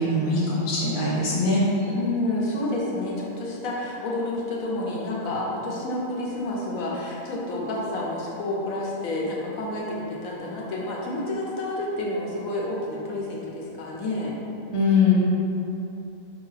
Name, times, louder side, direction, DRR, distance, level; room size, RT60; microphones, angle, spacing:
voice 1, 0.0-1.9 14.7-15.1, left 3 dB, 30° left, -6 dB, 0.7 m, -22 dB
voice 2, 1.9-14.3, left 2 dB, 85° left, -4 dB, 1.2 m, -29 dB
4.4 x 3.1 x 3.2 m, 2.8 s
omnidirectional pair, 1.4 m